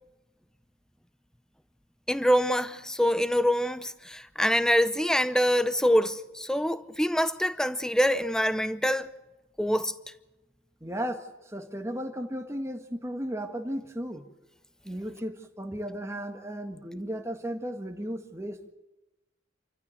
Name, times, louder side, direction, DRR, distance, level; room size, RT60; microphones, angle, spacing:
voice 1, 2.1-9.1 9.6-9.9, equal, 5° left, 0.7 m, -25 dB
voice 2, 10.8-14.3 14.8-18.7, equal, 15° right, 1.7 m, -35 dB
27.5 x 14.5 x 7.8 m
head